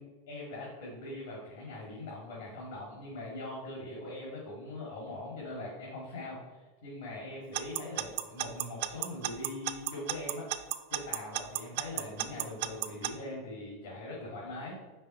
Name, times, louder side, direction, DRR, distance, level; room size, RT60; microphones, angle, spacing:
voice 1, 0.0-10.5 10.9-14.8, left 1 dB, 85° left, -4 dB, 1.8 m, -42 dB
Alarm / Clock, 7.5-13.1, right 14 dB, 65° right, 0.4 m, -32 dB
5.4 x 4.5 x 4.2 m, 1.3 s
supercardioid pair, 145°, 0 cm